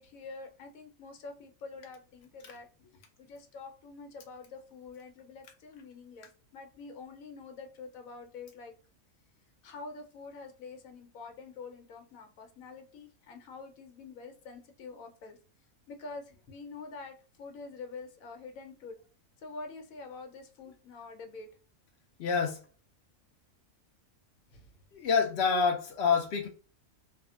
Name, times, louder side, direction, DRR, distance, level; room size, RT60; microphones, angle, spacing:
voice 1, 0.0-8.7 9.6-15.4 15.9-19.0 19.4-21.5 24.5-24.7, left 4 dB, 85° left, 1.1 m, -46 dB
voice 2, 22.2-22.6 24.9-26.5, left 5 dB, 65° left, 0.7 m, -27 dB
3.5 x 2.1 x 2.3 m
omnidirectional pair, 1.4 m